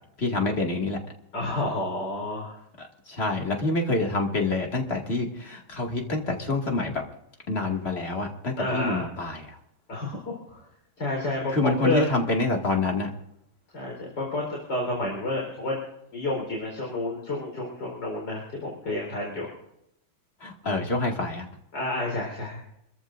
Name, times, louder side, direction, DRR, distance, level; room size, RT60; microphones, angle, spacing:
voice 1, 0.2-1.0 2.8-7.0 7.5-9.6 11.5-13.1 20.4-21.5, left 2 dB, 30° left, 1 dB, 2.3 m, -27 dB
voice 2, 1.3-2.6 8.6-9.0 9.9-10.6 11.0-12.0 13.7-15.8 16.1-19.5 21.7-22.6, left 2 dB, 55° left, -2 dB, 4.8 m, -30 dB
28.0 x 14.5 x 2.6 m, 0.79 s
omnidirectional pair, 2.3 m